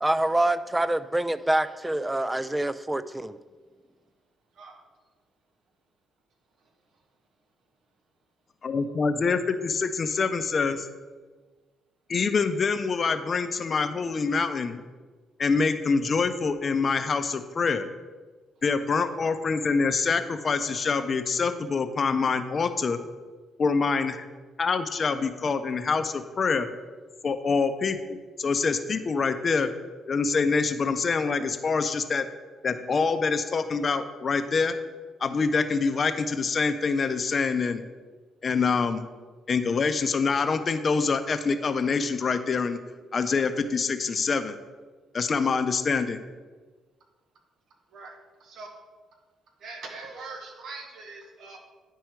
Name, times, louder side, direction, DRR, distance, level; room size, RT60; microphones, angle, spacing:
voice 1, 0.0-3.4, right 1 dB, 10° right, 14 dB, 0.4 m, -26 dB
voice 2, 8.6-10.9 12.1-14.8 15.4-17.9 18.6-23.0 23.6-24.3 24.6-26.7 27.2-29.7 30.1-32.3 32.6-34.8 35.2-37.8 38.4-39.1 39.5-42.8 43.1-44.6 45.1-46.2, left 4 dB, 40° left, 10 dB, 0.6 m, -25 dB
voice 3, 49.6-51.6, right 3 dB, 70° right, 3 dB, 1.3 m, -41 dB
10.0 x 4.6 x 4.6 m, 1.4 s
cardioid pair, 90°, 0 cm